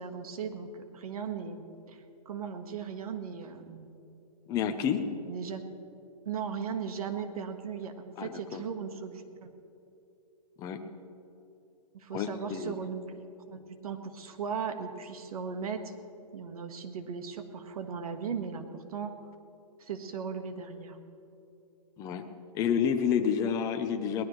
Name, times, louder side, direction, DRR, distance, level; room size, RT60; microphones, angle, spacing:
voice 1, 0.0-3.9 5.3-5.6 6.2-9.5 11.9-15.9 16.3-19.1 19.8-21.0, right 6 dB, 65° right, 7 dB, 1.6 m, -37 dB
voice 2, 4.5-5.0 8.2-8.6 10.6-10.8 12.1-12.8 22.0-22.2 22.5-24.3, left 7 dB, 15° left, 6 dB, 0.7 m, -29 dB
22.5 x 18.0 x 3.2 m, 2.8 s
hypercardioid pair, 160°, 21 cm